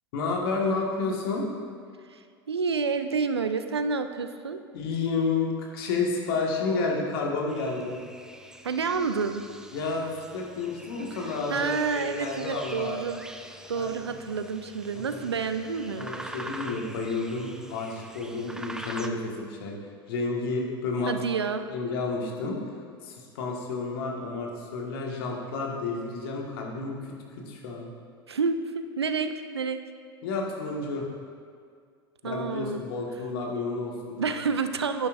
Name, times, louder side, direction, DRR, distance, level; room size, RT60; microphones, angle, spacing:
voice 1, 0.1-1.4 4.7-8.0 9.7-13.0 13.7-14.1 14.9-15.3 16.0-19.7 20.1-21.1 21.7-22.6 23.0-26.9 27.4-27.9 30.2-31.1 32.2-34.3, left 3 dB, 60° left, -1 dB, 1.7 m, -30 dB
voice 2, 2.1-4.6 8.6-9.4 11.5-13.2 13.7-16.1 21.1-21.7 28.3-29.8 32.2-32.8 34.2-35.1, right 5 dB, 85° right, 9 dB, 0.5 m, -29 dB
sound 1, 7.5-19.1, right 1 dB, 5° right, 0.5 m, -44 dB
10.5 x 10.0 x 2.6 m, 2.1 s
figure-of-eight pair, 80°, 13 cm